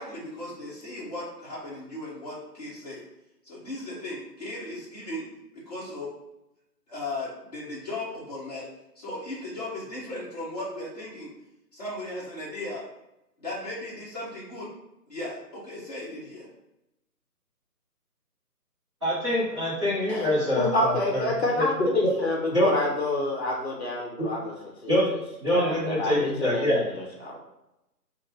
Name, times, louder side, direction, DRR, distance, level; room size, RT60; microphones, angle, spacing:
voice 1, 0.0-3.0 3.4-5.3 5.7-6.1 6.9-8.7 8.9-11.3 11.7-12.9 13.4-14.7 15.1-16.5, left 1 dB, 25° left, -8 dB, 1.2 m, -36 dB
voice 2, 19.0-21.2 21.6-22.1 22.5-22.7 24.9-25.1 25.4-26.8, left 1 dB, 20° right, -14 dB, 1.1 m, -25 dB
voice 3, 20.1-24.5 24.8-24.9 25.5-27.4, left 1 dB, 40° left, -1 dB, 1.1 m, -28 dB
3.6 x 2.6 x 4.0 m, 0.90 s
figure-of-eight pair, 170°, 49 cm